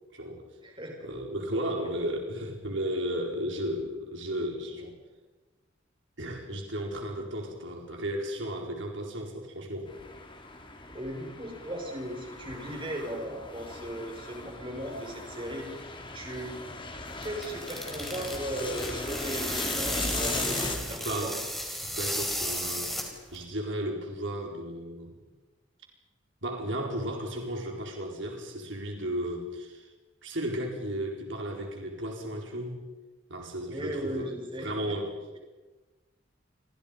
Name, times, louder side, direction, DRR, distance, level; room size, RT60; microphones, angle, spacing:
voice 1, 0.1-0.4 1.0-4.9 6.2-9.9 21.0-21.4 21.8-22.9 23.3-25.2 26.4-29.9 30.2-32.8 33.3-34.3 34.6-35.4, equal, 70° right, 1 dB, 4.6 m, -34 dB
voice 2, 0.6-1.1 1.5-1.6 10.9-15.9 16.1-16.6 17.2-21.3 33.7-35.0, right 1 dB, 25° right, 1 dB, 5.9 m, -37 dB
sound 1, 9.8-20.8, left 2 dB, 25° left, 3.0 m, -38 dB
sound 2, 17.1-23.4, equal, ahead, 4.6 m, -34 dB
30.0 x 24.5 x 5.3 m, 1.2 s
head